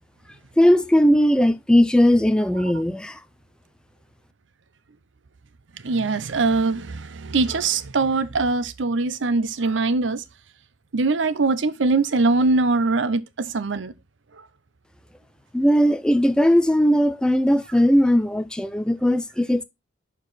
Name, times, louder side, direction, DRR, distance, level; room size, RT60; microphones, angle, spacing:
voice 1, 0.6-3.2 15.5-19.6, equal, 5° left, 0.4 m, -18 dB
voice 2, 5.8-10.2 10.9-13.9, right 3 dB, 80° right, 0.7 m, -22 dB
6.7 x 4.7 x 4.1 m
head